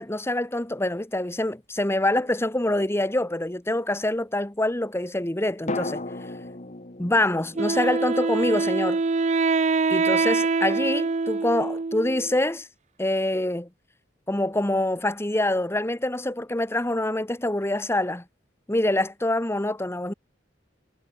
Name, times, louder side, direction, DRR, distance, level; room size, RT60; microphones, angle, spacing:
voice 1, 0.0-6.0 7.0-9.0 9.9-12.7 13.0-13.7 14.3-18.2 18.7-20.1, left 1 dB, 15° left, 1.3 m, -25 dB
sound 1, 2.2-3.3 5.7-9.6 9.9-10.0, left 2 dB, 40° left, 1.8 m, -37 dB
Wind instrument woodwind instrument, 7.6-12.4, right 4 dB, 40° right, 0.5 m, -24 dB
head